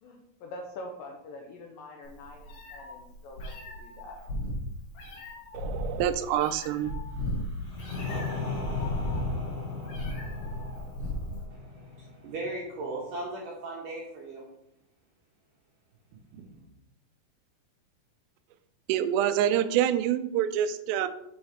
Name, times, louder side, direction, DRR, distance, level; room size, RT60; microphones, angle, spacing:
voice 1, 0.0-4.2, left 2 dB, 85° left, 1 dB, 1.9 m, -45 dB
Meow, 2.1-11.4, left 1 dB, 55° left, 3.8 m, -36 dB
voice 2, 5.5-6.9 18.9-21.1, right 10 dB, 85° right, 10 dB, 2.7 m, -26 dB
sound 1, 7.1-12.8, left 3 dB, 30° left, 0.9 m, -37 dB
voice 3, 11.5-14.4 16.4-16.7, right 2 dB, 70° right, -3 dB, 2.1 m, -38 dB
7.9 x 4.1 x 4.9 m, 0.82 s
omnidirectional pair, 4.9 m